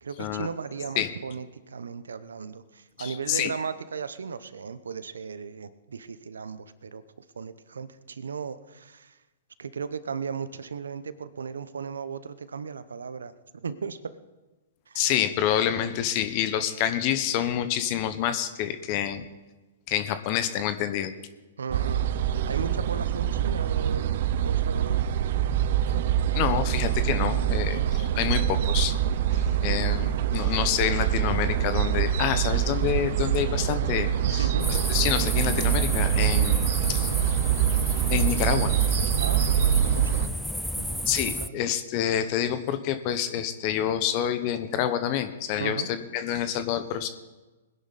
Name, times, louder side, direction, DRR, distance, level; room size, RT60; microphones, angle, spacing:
voice 1, 0.0-7.0 7.3-9.1 9.6-13.3 13.6-14.0 14.9-15.0 21.6-22.1 22.5-25.0 27.7-28.0 28.3-28.4 29.8-30.3 34.2-34.7 39.2-40.4 40.8-41.1 41.4-41.6 45.6-45.9, right 6 dB, 85° right, 14 dB, 0.9 m, -36 dB
voice 2, 3.0-3.5 14.9-19.2 19.9-21.1 26.3-28.9 29.6-37.1 38.1-38.7 41.1-47.1, left 10 dB, 45° left, 10 dB, 1.1 m, -27 dB
sound 1, 21.7-40.3, right 10 dB, 60° right, 0.7 m, -25 dB
sound 2, 34.6-41.5, left 1 dB, ahead, 0.4 m, -33 dB
20.5 x 11.0 x 4.2 m, 1.2 s
hypercardioid pair, 125°, 0 cm